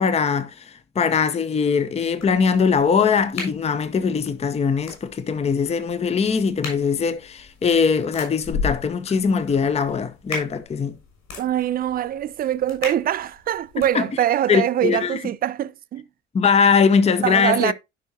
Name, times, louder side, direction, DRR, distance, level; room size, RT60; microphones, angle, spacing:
voice 1, 0.0-11.0 13.8-14.1 14.5-15.2 16.3-17.7, left 6 dB, 15° left, 0.7 m, -21 dB
sound 1, 2.2-13.9, left 4 dB, 55° left, 6.9 m, -37 dB
voice 2, 11.4-16.0 17.2-17.7, right 11 dB, 25° right, 0.5 m, -23 dB
16.0 x 5.5 x 2.8 m
figure-of-eight pair, 60°, 38 cm